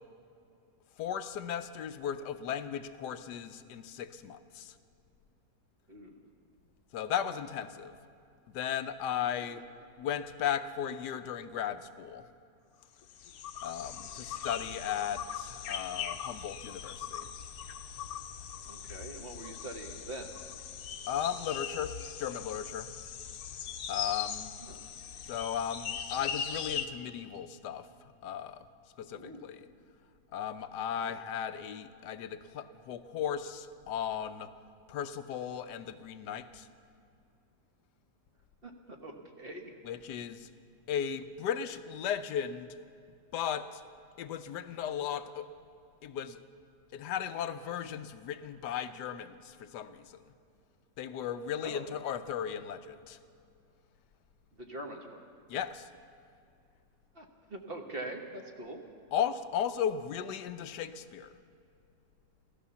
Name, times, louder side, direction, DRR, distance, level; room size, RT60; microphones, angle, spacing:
voice 1, 1.0-4.7 6.9-8.0 8.5-9.6 10.0-12.2 13.6-17.3 21.1-22.9 23.9-24.5 25.3-27.9 28.2-28.6 29.0-29.6 30.3-34.5 34.9-36.7 39.8-40.5 40.9-42.7 43.3-43.8 44.2-45.5 46.0-46.4 46.9-50.2 51.0-53.2 55.5-55.9 59.1-61.3, left 9 dB, 85° left, 11 dB, 1.3 m, -36 dB
voice 2, 5.9-6.2 13.9-14.3 18.6-20.3 24.6-24.8 29.1-29.4 30.9-31.1 38.6-39.7 51.6-51.9 54.5-55.2 57.1-58.8, right 1 dB, 35° right, 2 dB, 1.4 m, -44 dB
sound 1, 13.0-26.9, left 8 dB, 65° left, 1.2 m, -40 dB
15.0 x 13.5 x 6.9 m, 2.5 s
omnidirectional pair, 1.8 m